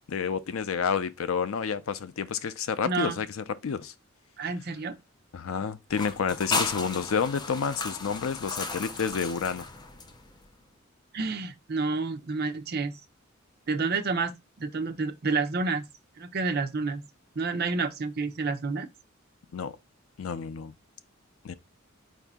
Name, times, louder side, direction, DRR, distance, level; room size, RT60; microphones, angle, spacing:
voice 1, 0.1-3.9 5.3-9.7 19.5-19.8 20.2-20.7 21.4-21.5, left 6 dB, 85° left, 0.5 m, -30 dB
voice 2, 2.9-3.2 4.4-4.9 11.1-12.9 13.7-15.9 16.2-17.0 17.4-18.9, right 4 dB, 50° right, 0.6 m, -29 dB
sound 1, 5.9-10.5, left 3 dB, 20° left, 0.5 m, -34 dB
4.8 x 2.6 x 3.5 m
head